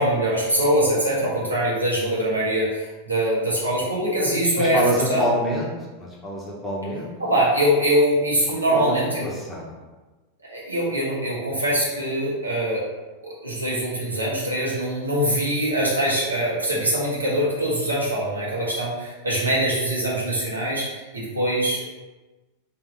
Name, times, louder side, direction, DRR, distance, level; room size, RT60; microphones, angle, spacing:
voice 1, 0.0-4.8 5.1-5.2 7.2-9.3 10.4-12.8 13.4-21.9, right 1 dB, 90° right, -7 dB, 1.2 m, -23 dB
voice 2, 4.6-5.7 6.0-7.1 8.7-9.8, equal, 10° left, -4 dB, 1.0 m, -27 dB
3.4 x 2.7 x 3.7 m, 1.2 s
figure-of-eight pair, 90°, 0 cm